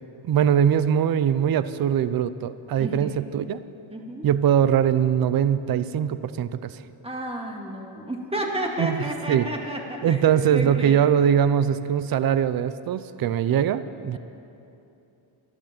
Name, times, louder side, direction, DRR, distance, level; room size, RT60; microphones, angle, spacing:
voice 1, 0.3-3.6 4.2-6.8 8.8-9.5 10.0-14.2, right 9 dB, 45° right, 14 dB, 0.6 m, -22 dB
voice 2, 2.8-3.2 3.9-4.3 7.0-11.1 14.1-14.2, right 1 dB, 10° right, 1 dB, 2.0 m, -31 dB
12.0 x 11.5 x 7.4 m, 2.8 s
cardioid pair, 95°, 49 cm